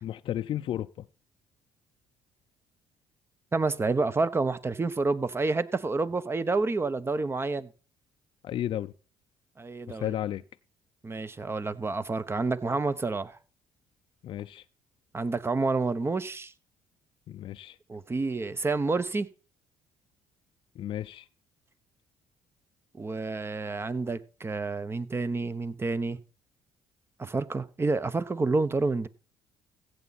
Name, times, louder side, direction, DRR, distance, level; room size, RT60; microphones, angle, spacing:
voice 1, 0.0-1.1 8.4-8.9 9.9-10.4 14.2-14.6 17.3-17.8 20.8-21.3, left 11 dB, 60° left, 0.5 m, -33 dB
voice 2, 3.5-7.7 9.6-10.1 11.0-13.4 15.1-16.5 17.9-19.3 22.9-26.2 27.2-29.1, right 3 dB, 25° right, 1.0 m, -29 dB
15.0 x 7.9 x 4.1 m
supercardioid pair, 75°, 10 cm